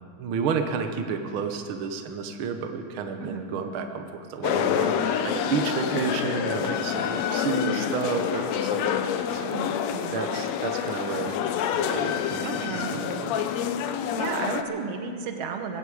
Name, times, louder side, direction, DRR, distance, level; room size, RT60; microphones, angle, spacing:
voice 1, 0.2-9.0 9.3-9.5 10.1-11.4 11.8-13.4, right 5 dB, 85° right, 5 dB, 1.1 m, -31 dB
sound 1, 4.4-14.6, left 8 dB, 75° left, 1.6 m, -27 dB
voice 2, 9.5-10.1 12.4-13.0 14.2-15.8, right 5 dB, 65° right, 5 dB, 1.6 m, -33 dB
21.0 x 8.3 x 8.4 m, 2.3 s
omnidirectional pair, 3.8 m